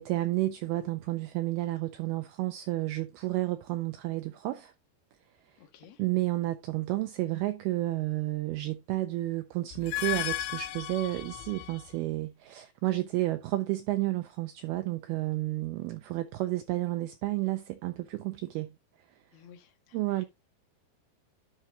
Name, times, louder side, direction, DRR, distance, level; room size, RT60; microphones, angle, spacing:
voice 1, 0.0-4.7 6.0-18.7 19.9-20.3, right 17 dB, 80° right, 2.3 m, -31 dB
voice 2, 5.6-6.0 19.3-20.3, left 8 dB, 60° left, 1.9 m, -55 dB
sound 1, 9.7-12.0, left 16 dB, 85° left, 3.0 m, -35 dB
10.5 x 6.0 x 3.0 m
omnidirectional pair, 5.0 m